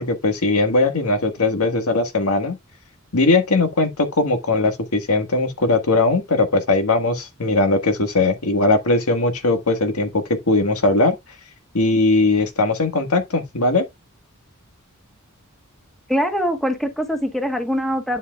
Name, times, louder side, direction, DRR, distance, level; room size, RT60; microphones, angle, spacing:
voice 1, 0.0-2.6 3.1-11.2 11.7-13.8, left 2 dB, 85° left, 1.6 m, -19 dB
voice 2, 16.1-18.2, equal, ahead, 1.3 m, -23 dB
11.0 x 4.6 x 2.4 m
head